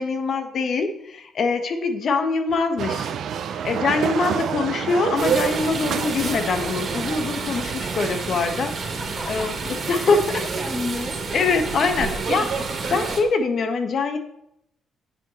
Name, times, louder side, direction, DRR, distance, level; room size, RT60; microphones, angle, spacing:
voice 1, 0.0-3.1 3.5-9.0 9.2-10.2 11.3-12.5 12.9-14.2, left 4 dB, 55° left, 7 dB, 1.5 m, -23 dB
sound 1, 2.8-8.4, right 8 dB, 70° right, 0.7 m, -28 dB
sound 2, 5.2-13.2, right 4 dB, 50° right, 2.1 m, -29 dB
voice 2, 9.0-9.5 9.8-12.0 12.3-12.4, left 1 dB, ahead, 3 dB, 2.0 m, -34 dB
9.9 x 7.8 x 4.4 m, 0.77 s
cardioid pair, 90°, 0 cm